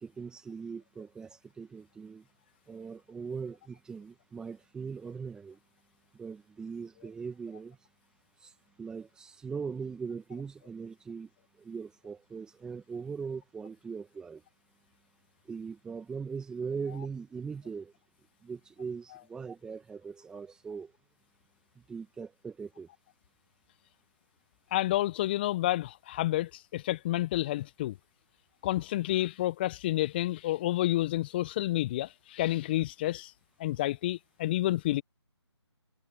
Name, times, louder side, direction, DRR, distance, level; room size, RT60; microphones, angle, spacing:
voice 1, 0.0-2.2 2.7-5.6 6.1-7.8 8.4-8.5 8.8-11.3 11.6-14.4 15.5-17.9 18.4-20.9 21.9-22.9, right 5 dB, 5° right, 1.9 m, -40 dB
voice 2, 24.7-28.0 28.6-33.3 33.6-35.0, left 15 dB, 20° left, 1.2 m, -29 dB
figure-of-eight pair, 150°, 15 cm